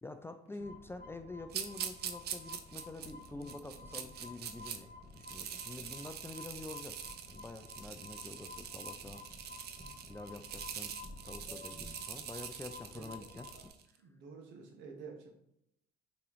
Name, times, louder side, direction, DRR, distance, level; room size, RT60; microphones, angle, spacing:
voice 1, 0.0-7.0 7.3-9.2 10.1-11.0 11.2-13.7, left 2 dB, 10° left, 8 dB, 0.3 m, -47 dB
sound 1, 0.6-13.7, left 3 dB, 50° left, 0.7 m, -53 dB
sound 2, 1.5-4.8 5.1-13.8, right 8 dB, 55° right, 0.5 m, -44 dB
sound 3, 3.0-12.0, equal, 25° right, 1.3 m, -56 dB
voice 2, 12.9-13.7 14.0-15.3, right 5 dB, 75° right, 2 dB, 1.1 m, -51 dB
3.4 x 3.0 x 4.8 m, 0.78 s
supercardioid pair, 75°, 19 cm